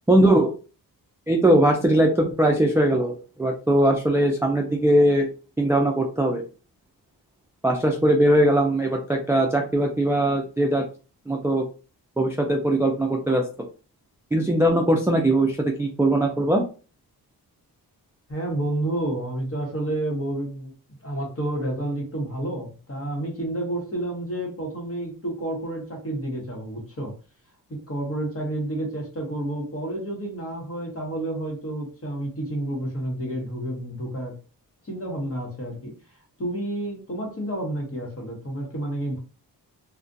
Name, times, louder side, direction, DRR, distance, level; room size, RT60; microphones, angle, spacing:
voice 1, 0.1-0.5 1.3-5.3 5.6-6.4 7.6-10.8 11.3-11.6 12.2-13.4 14.3-16.6, right 1 dB, 5° right, 0 dB, 0.3 m, -20 dB
voice 2, 18.3-20.7 21.0-27.1 27.7-34.3 34.8-35.9 36.4-39.2, right 1 dB, 35° left, 0 dB, 1.1 m, -30 dB
2.4 x 2.1 x 2.5 m, 0.36 s
wide cardioid pair, 90°, 39 cm